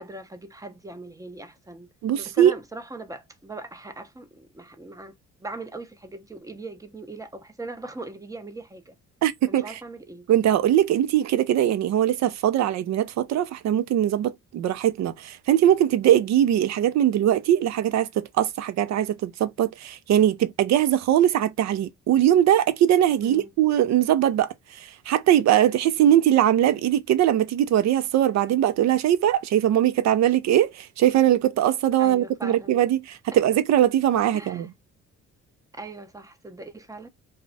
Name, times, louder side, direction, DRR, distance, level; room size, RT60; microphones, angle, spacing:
voice 1, 0.0-1.9 2.2-5.1 5.4-9.0 9.5-10.3 22.1-22.2 23.2-23.5 32.0-32.7 34.3-34.7 35.7-37.1, right 2 dB, 10° right, 0.6 m, -40 dB
voice 2, 2.0-2.5 9.2-9.8 10.3-34.7, right 11 dB, 65° right, 0.5 m, -21 dB
2.3 x 2.1 x 3.8 m
cardioid pair, 90°, 30 cm